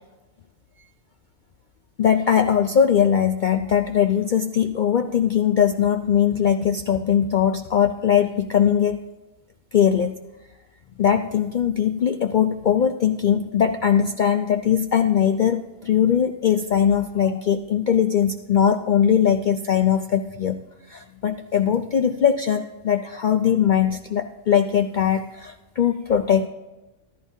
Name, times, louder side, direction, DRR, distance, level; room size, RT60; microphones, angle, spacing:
voice 1, 2.0-9.0 9.7-10.2 11.0-20.6 20.9-26.5, left 8 dB, 60° left, 7 dB, 0.5 m, -20 dB
14.5 x 12.5 x 2.7 m, 1.1 s
omnidirectional pair, 1.2 m